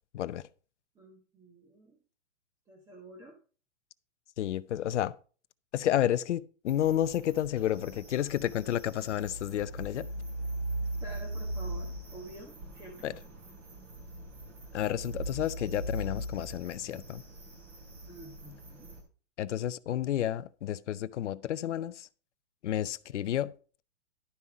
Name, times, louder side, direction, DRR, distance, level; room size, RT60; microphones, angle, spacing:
voice 1, 0.9-2.0 2.7-3.4 7.5-7.6 11.0-13.1 18.1-18.9, right 1 dB, 10° right, 1.2 m, -49 dB
voice 2, 4.4-5.1 5.7-10.1 13.0-13.1 14.7-17.2 19.4-22.1 22.6-23.5, left 11 dB, 70° left, 0.7 m, -31 dB
sound 1, 6.7-19.0, right 1 dB, 30° right, 3.0 m, -40 dB
11.5 x 5.6 x 4.7 m
hypercardioid pair, 155°, 37 cm